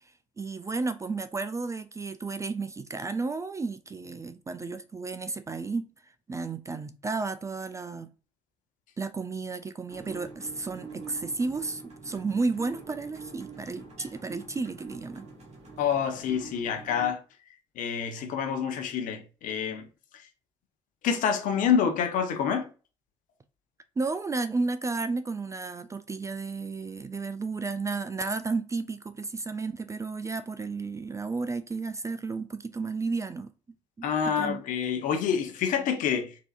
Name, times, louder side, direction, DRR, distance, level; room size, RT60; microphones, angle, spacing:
voice 1, 0.4-5.9 6.3-8.1 9.0-15.3 24.0-33.5 34.3-34.6, right 3 dB, 20° right, 0.3 m, -32 dB
sound 1, 9.9-17.1, right 4 dB, 40° right, 1.3 m, -45 dB
voice 2, 15.8-17.2 17.8-19.9 20.1-20.2 21.0-22.7 34.0-36.4, left 7 dB, 55° left, 0.7 m, -27 dB
4.1 x 2.7 x 2.4 m
figure-of-eight pair, 45°, 16 cm